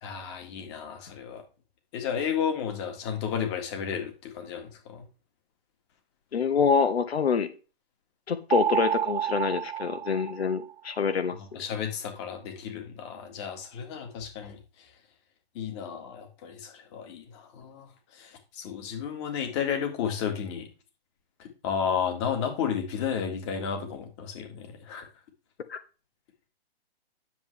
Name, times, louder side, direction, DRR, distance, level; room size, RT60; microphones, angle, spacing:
voice 1, 0.0-1.4 1.9-5.0 11.3-14.6 15.5-20.7 21.4-25.1, left 7 dB, 25° left, 5 dB, 2.0 m, -33 dB
voice 2, 6.3-7.5 8.3-11.4 25.7-25.8, left 6 dB, 85° left, 11 dB, 1.5 m, -26 dB
sound 1, 8.5-11.0, right 11 dB, 65° right, 0.5 m, -29 dB
10.5 x 7.4 x 3.4 m, 0.33 s
hypercardioid pair, 160°, 31 cm